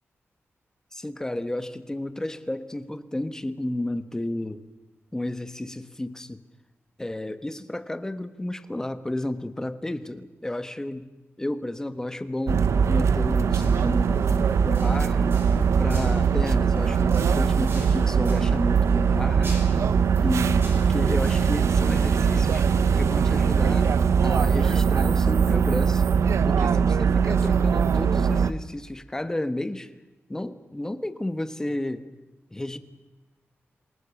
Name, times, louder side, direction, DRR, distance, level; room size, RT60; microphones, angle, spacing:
voice 1, 0.9-4.6 5.1-6.4 7.0-11.1 11.4-14.2 14.6-15.4 15.8-19.6 20.2-22.7 22.9-23.9 24.2-26.0 26.4-29.9 30.3-32.1 32.5-32.8, left 1 dB, 10° left, 10 dB, 1.4 m, -32 dB
sound 1, 12.5-28.5, right 6 dB, 85° right, 1.0 m, -21 dB
sound 2, 13.5-24.4, right 1 dB, 50° right, 6.7 m, -42 dB
27.0 x 18.5 x 7.2 m, 1.2 s
wide cardioid pair, 150°, 5 cm